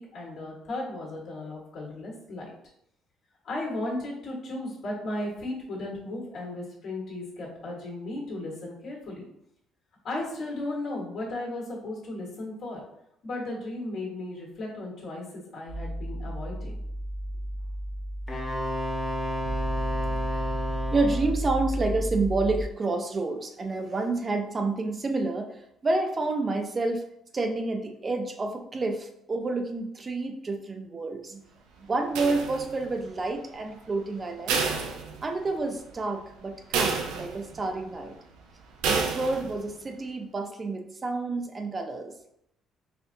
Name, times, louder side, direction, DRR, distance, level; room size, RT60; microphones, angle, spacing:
voice 1, 0.0-2.4 3.4-9.2 10.0-12.8 13.2-16.7, left 2 dB, 65° left, -2 dB, 1.4 m, -35 dB
sound 1, 15.7-22.6, equal, 65° right, 0.8 m, -32 dB
Wind instrument woodwind instrument, 18.3-21.4, equal, 25° left, 1.1 m, -32 dB
voice 2, 20.9-27.1 27.3-31.4 31.8-34.6 35.2-38.1 38.8-42.1, right 3 dB, 35° right, 4 dB, 0.5 m, -29 dB
sound 2, 32.1-33.0 34.5-35.6 36.0-36.1 36.7-37.6 38.8-39.6, right 5 dB, 85° right, 0.4 m, -29 dB
4.3 x 2.6 x 2.6 m, 0.76 s
supercardioid pair, 75°, 0 cm